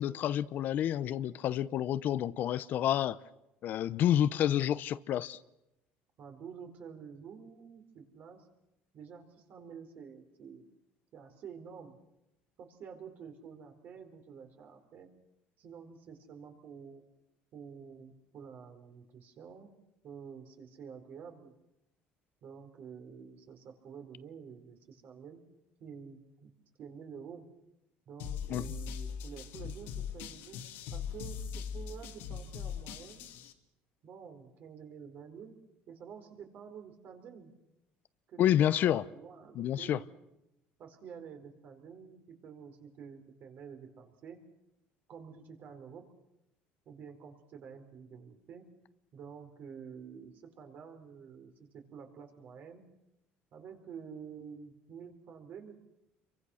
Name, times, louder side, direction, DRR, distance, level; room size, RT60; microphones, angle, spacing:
voice 1, 0.0-3.2 3.6-5.4 28.5-28.6 38.4-39.0 39.5-40.0, left 11 dB, 55° left, 0.8 m, -29 dB
voice 2, 6.2-8.5 8.9-10.6 11.1-12.0 12.6-15.1 15.6-17.0 17.5-19.7 20.0-21.5 22.4-25.4 25.8-26.5 26.8-27.4 28.1-30.6 30.9-33.3 34.0-35.6 35.9-37.5 38.3-40.1 40.8-44.4 45.1-46.0 46.9-48.6 49.1-52.8 53.5-55.7, right 6 dB, 55° right, 4.5 m, -49 dB
sound 1, 28.2-33.5, left 7 dB, 75° left, 2.1 m, -40 dB
28.5 x 23.5 x 6.5 m
cardioid pair, 120°, 4 cm